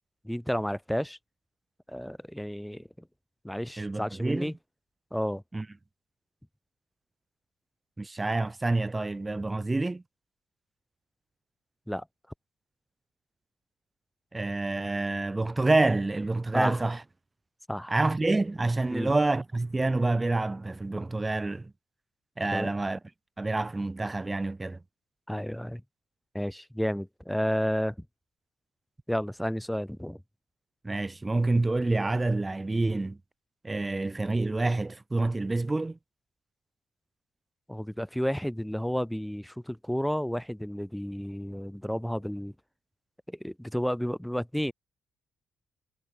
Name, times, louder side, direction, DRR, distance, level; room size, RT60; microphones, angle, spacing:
voice 1, 0.2-1.2 1.9-3.1 3.4-4.5 5.1-5.4 11.9-12.1 16.5-16.8 17.7-17.9 18.9-19.1 22.5-22.7 25.3-25.8 26.3-28.1 29.1-30.2 37.7-42.5 43.3-44.7, equal, ahead, 2.2 m, -31 dB
voice 2, 3.8-4.5 5.5-5.7 8.0-10.0 14.3-17.0 17.9-21.7 22.4-23.0 23.4-24.8 30.8-33.2 33.6-36.0, right 2 dB, 20° right, 3.9 m, -27 dB
cardioid pair, 90°, 0 cm